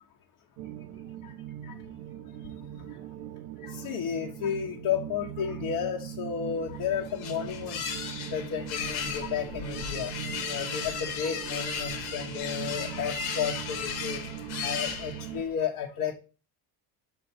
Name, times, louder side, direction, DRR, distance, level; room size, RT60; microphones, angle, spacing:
sound 1, 0.6-15.4, right 11 dB, 85° right, 0.6 m, -41 dB
voice 1, 3.8-7.8 8.3-10.1 10.5-14.2 14.6-16.1, left 8 dB, 55° left, 0 dB, 1.0 m, -32 dB
sound 2, 6.6-15.5, left 7 dB, 80° left, 1.3 m, -36 dB
6.7 x 4.4 x 4.3 m, 0.34 s
cardioid pair, 135°, 39 cm